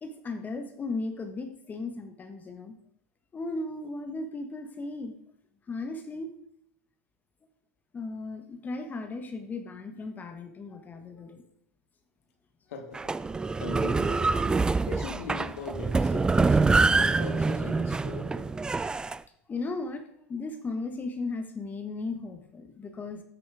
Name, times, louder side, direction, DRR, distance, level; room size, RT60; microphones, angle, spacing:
voice 1, 0.0-2.8 3.3-5.2 5.7-6.3 7.9-11.4 19.5-23.2, left 3 dB, 20° left, 7 dB, 1.4 m, -36 dB
voice 2, 12.7-13.0 13.6-14.6 14.9-16.6 16.9-18.5, left 4 dB, 75° left, 6 dB, 2.2 m, -40 dB
sound 1, 12.9-19.2, right 3 dB, 10° right, 0.4 m, -25 dB
13.5 x 6.2 x 4.9 m, 0.74 s
hypercardioid pair, 120°, 8 cm